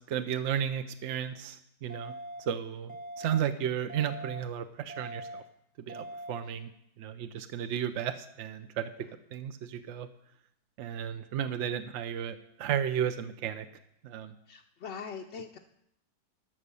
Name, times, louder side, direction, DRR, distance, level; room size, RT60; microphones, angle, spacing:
voice 1, 0.1-2.1 2.4-5.4 5.8-6.7 7.0-8.9 9.3-10.1 10.8-13.7 14.0-14.3, right 9 dB, 65° right, 9 dB, 0.7 m, -33 dB
sound 1, 1.9-2.4 2.9-3.4 3.9-4.4 4.9-5.4 5.9-6.4, right 1 dB, 5° right, 0.7 m, -42 dB
voice 2, 14.5-15.6, left 6 dB, 60° left, 2 dB, 0.7 m, -42 dB
12.5 x 6.2 x 6.8 m, 0.78 s
omnidirectional pair, 1.7 m